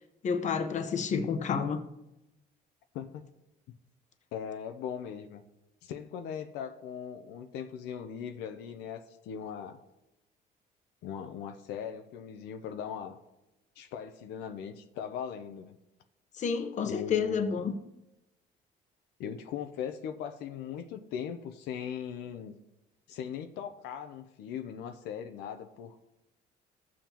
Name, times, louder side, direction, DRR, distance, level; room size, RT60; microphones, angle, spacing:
voice 1, 0.2-1.8 16.4-17.8, left 6 dB, 45° left, 1.0 m, -30 dB
voice 2, 2.9-3.3 4.3-5.4 5.8-9.8 11.0-13.2 13.8-15.8 16.9-17.6 19.2-22.5 23.1-26.0, left 8 dB, 85° left, 0.7 m, -39 dB
15.0 x 7.2 x 2.9 m
cardioid pair, 110°, 17 cm